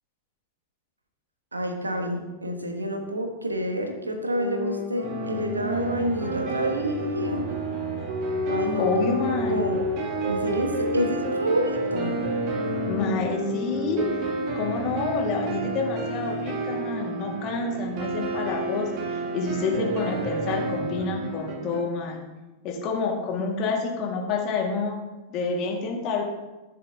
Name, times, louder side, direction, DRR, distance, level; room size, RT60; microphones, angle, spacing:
voice 1, 1.5-7.5 8.5-8.9 9.5-9.8 10.3-12.1, equal, 80° right, 4 dB, 1.3 m, -28 dB
sound 1, 4.3-14.3, left 2 dB, 60° right, 1.8 m, -31 dB
sound 2, 5.0-21.8, right 3 dB, 40° right, 1.7 m, -31 dB
voice 2, 8.8-9.8 12.9-14.1 14.5-22.2 22.6-25.0 25.3-26.2, left 4 dB, 40° left, 0 dB, 1.9 m, -28 dB
14.5 x 6.8 x 2.8 m, 1.1 s
figure-of-eight pair, 90°, 0 cm